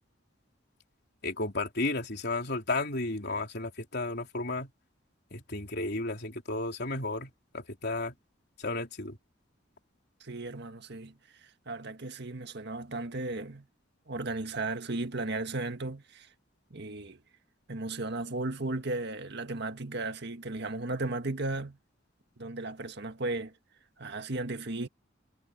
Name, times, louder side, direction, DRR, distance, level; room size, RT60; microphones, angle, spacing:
voice 1, 1.2-4.7 5.3-8.1 8.6-9.2, left 2 dB, 60° left, 3.9 m, -33 dB
voice 2, 10.2-11.2 11.7-13.7 14.1-16.3 16.7-17.2 17.7-21.8 22.4-23.5 24.0-24.9, right 2 dB, 60° right, 1.8 m, -35 dB
head